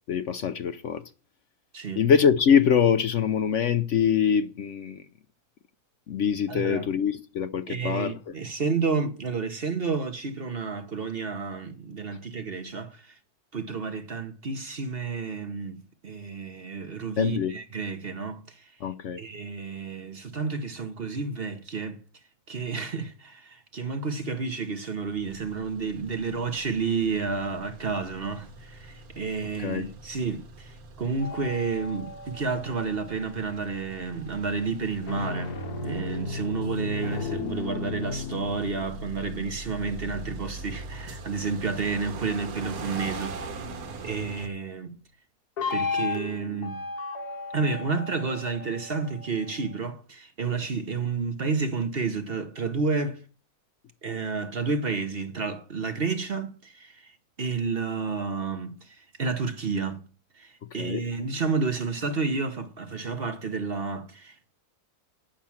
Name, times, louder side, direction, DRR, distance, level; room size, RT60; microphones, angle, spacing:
voice 1, 0.1-1.0 2.0-5.0 6.1-8.2 17.2-17.5 18.8-19.2 29.6-29.9 60.8-61.0, left 7 dB, 60° left, 0.9 m, -24 dB
voice 2, 1.7-2.1 6.5-6.9 7.7-13.2 13.5-18.7 19.2-22.0 22.5-43.4 44.0-45.0 45.7-46.8 47.5-53.2 54.0-60.0 60.3-64.5, right 4 dB, 45° right, 1.1 m, -31 dB
sound 1, 25.1-44.5, right 3 dB, 70° right, 1.6 m, -43 dB
sound 2, 31.2-33.8 34.9-41.7 45.6-49.8, left 4 dB, 85° left, 2.2 m, -35 dB
10.5 x 6.0 x 7.2 m
omnidirectional pair, 1.6 m